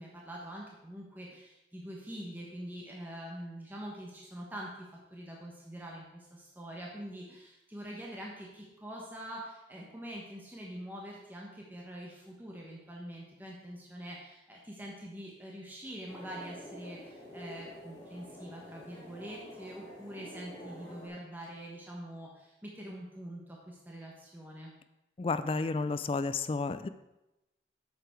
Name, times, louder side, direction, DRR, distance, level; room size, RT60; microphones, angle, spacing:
voice 1, 0.0-24.7, equal, 10° right, -3 dB, 1.1 m, -44 dB
sound 1, 16.0-21.1, equal, 15° left, 3.3 m, -48 dB
voice 2, 25.2-26.9, left 3 dB, 30° left, 11 dB, 0.3 m, -31 dB
8.1 x 6.9 x 4.5 m, 0.95 s
head